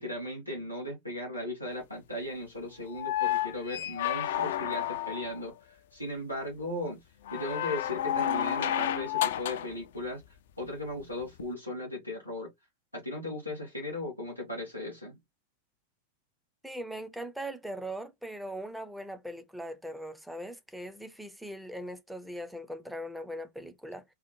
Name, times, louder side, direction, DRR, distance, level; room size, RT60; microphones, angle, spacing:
voice 1, 0.0-7.0 7.3-10.2 10.6-12.5 12.9-15.2, left 1 dB, 90° right, 1.0 m, -37 dB
sound 1, 2.9-5.4 7.3-9.7 11.4-11.5, left 11 dB, 55° left, 0.3 m, -31 dB
voice 2, 16.6-24.0, equal, 5° right, 0.5 m, -40 dB
3.8 x 2.1 x 2.9 m
figure-of-eight pair, 90°, 0 cm